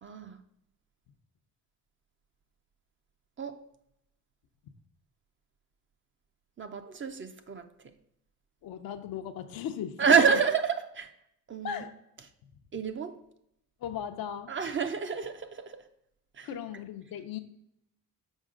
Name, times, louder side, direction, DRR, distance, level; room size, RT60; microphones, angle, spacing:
voice 1, 0.0-0.4 3.4-3.6 6.6-7.7 10.0-11.1 11.5-11.8 12.7-13.2 14.5-15.8 16.4-16.5, right 6 dB, 35° right, 0.6 m, -28 dB
voice 2, 8.6-10.4 11.6-11.9 13.8-14.5 16.4-17.4, left 8 dB, 70° left, 0.7 m, -37 dB
6.3 x 4.8 x 3.7 m
cardioid pair, 90°, 36 cm